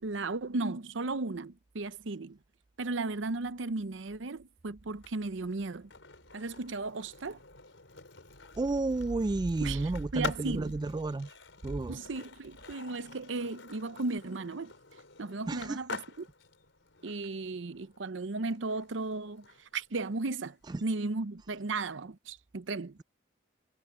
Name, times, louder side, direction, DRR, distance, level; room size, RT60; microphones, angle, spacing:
voice 1, 0.0-2.4 2.8-5.9 6.3-7.4 9.6-10.7 11.9-14.7 15.2-16.3 17.0-23.0, right 3 dB, 75° right, 0.7 m, -35 dB
Skateboard, 4.9-20.8, left 4 dB, 80° left, 4.5 m, -47 dB
voice 2, 8.6-11.3 11.6-12.0 15.5-15.8 20.7-20.8, right 2 dB, 20° right, 0.3 m, -31 dB
head